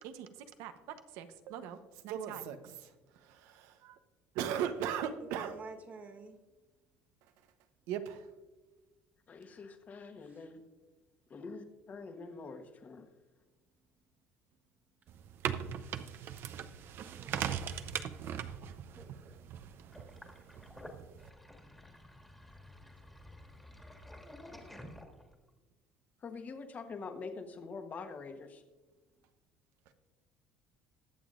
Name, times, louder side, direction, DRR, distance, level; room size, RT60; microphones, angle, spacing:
voice 1, 1.1-4.0 4.3-5.6 7.9-8.3 29.9-30.0, right 9 dB, 80° right, 10 dB, 0.9 m, -38 dB
voice 2, 5.3-6.4 10.3-10.4 16.8-17.5 18.9-19.4, right 3 dB, 35° right, 4 dB, 1.4 m, -50 dB
voice 3, 9.3-10.6 11.3-13.1 16.4-16.5 26.2-28.6, left 4 dB, 35° left, 6 dB, 1.2 m, -45 dB
sound 1, 15.1-21.3, right 9 dB, 55° right, 0.6 m, -40 dB
Sink (filling or washing), 19.9-25.5, left 1 dB, 5° left, 1.7 m, -52 dB
21.0 x 7.1 x 2.5 m, 1.2 s
cardioid pair, 120°, 5 cm